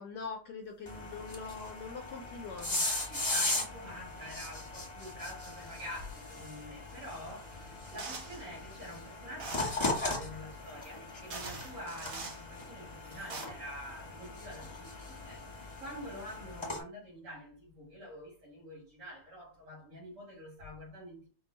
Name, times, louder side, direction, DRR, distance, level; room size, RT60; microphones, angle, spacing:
voice 1, 0.0-2.8, left 5 dB, 75° left, 1.0 m, -43 dB
sound 1, 0.9-16.8, left 2 dB, 20° left, 0.7 m, -38 dB
voice 2, 3.0-7.5 7.9-21.3, equal, 80° right, 3.2 m, -46 dB
sound 2, 8.0-8.5 9.4-9.9 10.8-10.9 11.3-12.4 13.1-13.5, right 3 dB, 45° right, 0.9 m, -43 dB
5.4 x 2.3 x 3.9 m
omnidirectional pair, 2.4 m